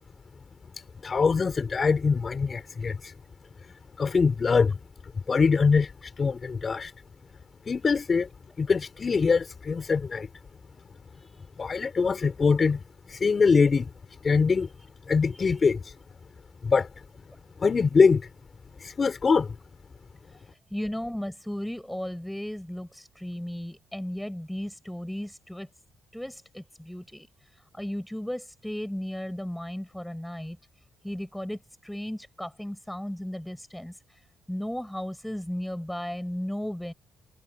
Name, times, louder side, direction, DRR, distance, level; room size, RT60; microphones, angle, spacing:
voice 1, 0.8-3.1 4.0-4.7 5.3-6.9 7.7-8.3 8.6-10.3 11.6-13.9 14.2-14.7 15.1-15.9 16.6-16.9 17.6-18.3 18.8-19.6, left 5 dB, 35° left, 5.2 m, -23 dB
voice 2, 15.3-15.7 20.3-25.7 26.1-30.6 31.0-34.2 34.5-36.9, equal, 5° left, 7.4 m, -35 dB
cardioid pair, 90°, 0 cm